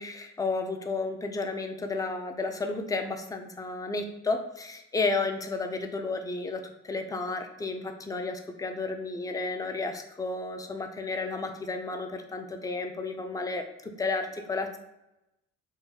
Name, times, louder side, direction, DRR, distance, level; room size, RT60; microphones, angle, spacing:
voice 1, 0.0-14.8, left 3 dB, 10° left, 5 dB, 0.3 m, -32 dB
3.8 x 2.2 x 2.8 m, 0.91 s
cardioid pair, 90°, 30 cm